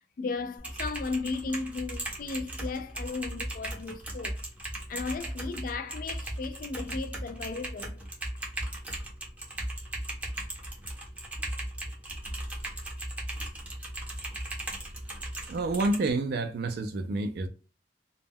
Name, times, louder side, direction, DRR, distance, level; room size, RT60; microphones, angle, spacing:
voice 1, 0.2-4.4 4.9-8.0, left 4 dB, 50° left, 0.3 m, -35 dB
Typing, 0.6-16.1, right 1 dB, 10° right, 0.5 m, -37 dB
voice 2, 15.5-17.5, right 2 dB, 55° right, 0.3 m, -28 dB
2.1 x 2.1 x 3.4 m
head